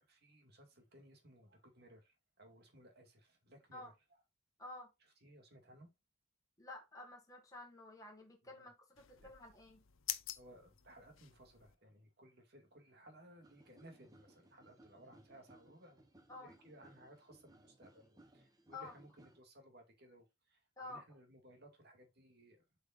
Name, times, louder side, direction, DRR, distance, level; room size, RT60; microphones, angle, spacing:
voice 1, 0.0-3.9 5.0-5.9 8.4-8.7 9.2-9.5 10.4-16.0 16.4-22.6, right 1 dB, 55° right, 2.3 m, -61 dB
voice 2, 4.6-4.9 6.6-9.8 16.3-16.5 18.7-18.9 20.8-21.0, left 2 dB, 15° left, 1.8 m, -51 dB
sound 1, 9.0-11.8, left 13 dB, 80° left, 0.7 m, -47 dB
sound 2, 13.4-19.4, right 1 dB, 20° right, 1.1 m, -64 dB
8.1 x 5.5 x 2.6 m
head